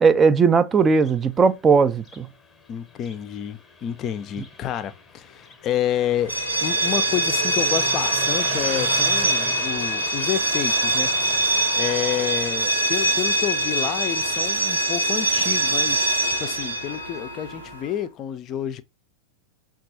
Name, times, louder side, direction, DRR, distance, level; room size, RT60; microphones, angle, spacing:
voice 1, 0.0-2.3, right 5 dB, 20° right, 0.5 m, -17 dB
Car passing by, 0.8-16.8, left 4 dB, 10° left, 0.9 m, -41 dB
voice 2, 2.7-11.1 11.8-18.8, left 10 dB, 30° left, 0.5 m, -29 dB
sound 1, 6.2-17.9, right 2 dB, 80° right, 1.0 m, -23 dB
6.0 x 2.4 x 2.7 m
figure-of-eight pair, 90°, 0 cm